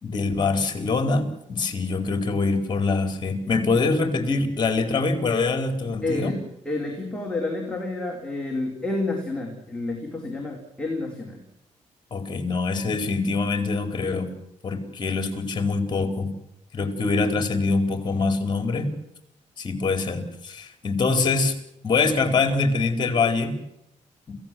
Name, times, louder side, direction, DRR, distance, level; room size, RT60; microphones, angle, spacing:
voice 1, 0.0-6.4 12.1-14.3 14.6-16.3 16.7-18.9 19.6-21.5 21.8-23.5 24.3-24.4, left 3 dB, 35° left, 8 dB, 4.3 m, -24 dB
voice 2, 6.0-11.4, left 2 dB, 5° left, -1 dB, 4.4 m, -29 dB
28.0 x 17.0 x 7.7 m, 0.80 s
cardioid pair, 125°, 13 cm